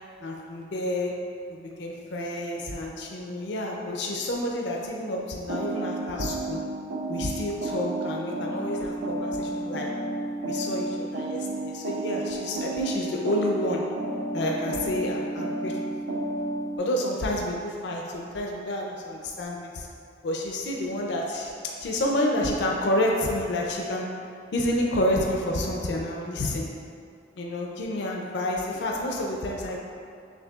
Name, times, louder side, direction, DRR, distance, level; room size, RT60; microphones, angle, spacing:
voice 1, 0.2-1.1 1.5-6.6 7.1-9.9 10.5-13.8 14.3-15.8 16.8-19.9 20.2-21.5 21.8-24.1 24.5-26.7 27.4-29.8, left 1 dB, 65° left, -1 dB, 0.4 m, -29 dB
sound 1, 5.5-16.8, right 2 dB, 80° right, 0.5 m, -32 dB
6.4 x 2.7 x 2.3 m, 2.3 s
head